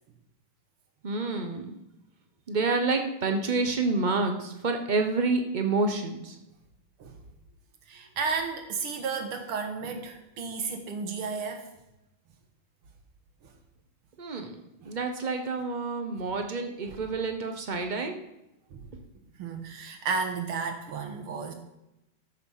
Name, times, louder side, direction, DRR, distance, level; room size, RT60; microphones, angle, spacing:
voice 1, 1.0-1.8 2.5-6.4 14.2-14.6 14.8-18.2, right 3 dB, 55° right, 5 dB, 0.5 m, -28 dB
voice 2, 7.9-11.7 14.8-14.9 16.9-17.0 18.7-18.8 19.4-21.5, right 5 dB, 75° right, 5 dB, 2.3 m, -33 dB
13.0 x 6.6 x 5.7 m, 0.91 s
omnidirectional pair, 2.4 m